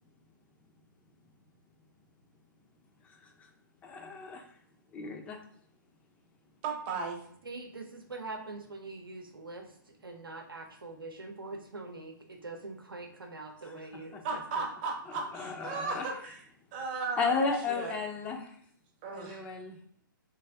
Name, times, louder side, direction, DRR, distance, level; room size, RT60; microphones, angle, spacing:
voice 1, 3.8-4.4 4.9-5.4 13.8-14.2 15.3-16.1 17.2-18.5 19.1-19.8, left 4 dB, 10° left, 3 dB, 0.4 m, -34 dB
voice 2, 6.6-7.2 14.2-16.4 16.7-18.0 19.0-19.4, right 4 dB, 30° right, 1 dB, 0.7 m, -36 dB
voice 3, 7.4-9.7 10.0-14.2 14.5-14.6, right 3 dB, 90° right, 5 dB, 0.7 m, -43 dB
3.4 x 2.5 x 3.3 m, 0.64 s
hypercardioid pair, 140°, 11 cm